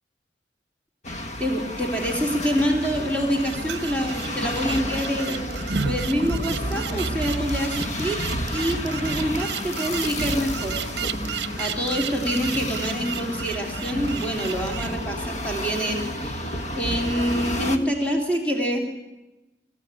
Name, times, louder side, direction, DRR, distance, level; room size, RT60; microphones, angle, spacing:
sound 1, 1.0-17.8, equal, 40° left, 1.4 m, -30 dB
voice 1, 1.4-5.4 5.8-10.8 11.6-18.9, equal, 10° left, 2 dB, 2.8 m, -26 dB
sound 2, 3.3-14.9, right 7 dB, 70° right, 0.7 m, -34 dB
25.0 x 14.5 x 8.8 m, 1.0 s
head